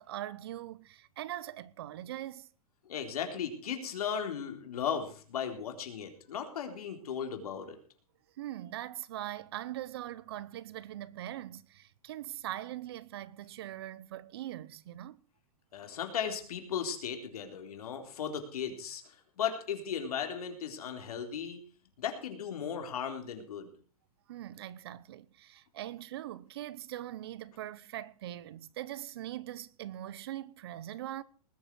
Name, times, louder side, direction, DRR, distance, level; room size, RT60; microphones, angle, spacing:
voice 1, 0.0-2.5 8.4-15.2 24.3-31.2, right 13 dB, 40° right, 0.8 m, -41 dB
voice 2, 2.8-7.8 15.7-21.6 22.0-23.7, left 7 dB, 85° left, 3.9 m, -36 dB
19.5 x 7.9 x 6.2 m
supercardioid pair, 180°, 19 cm